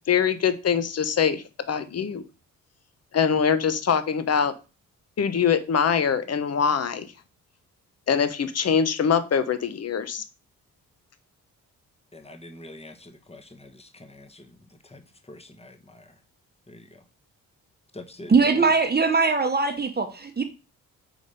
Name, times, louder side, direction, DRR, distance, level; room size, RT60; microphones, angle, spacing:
voice 1, 0.1-2.2 3.1-4.5 5.2-7.1 8.1-10.2, left 7 dB, 45° left, 0.9 m, -23 dB
voice 2, 12.1-16.2 16.7-17.0 17.9-18.7, left 1 dB, 15° left, 1.2 m, -46 dB
voice 3, 18.3-20.4, right 4 dB, 25° right, 1.1 m, -21 dB
4.9 x 4.2 x 5.2 m
supercardioid pair, 50°, 37 cm